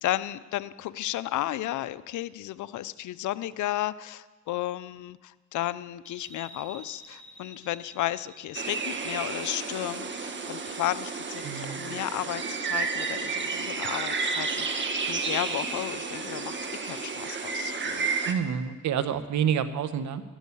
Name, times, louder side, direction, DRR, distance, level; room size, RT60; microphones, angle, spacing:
voice 1, 0.0-18.1, left 14 dB, 75° left, 15 dB, 0.7 m, -33 dB
sound 1, 6.0-13.2, equal, 5° left, 2.4 m, -52 dB
sound 2, 8.5-18.3, right 4 dB, 40° right, 1.6 m, -31 dB
voice 2, 11.4-11.8 18.3-20.2, right 8 dB, 70° right, 11 dB, 1.2 m, -28 dB
13.0 x 12.0 x 8.4 m, 1.3 s
cardioid pair, 90°, 30 cm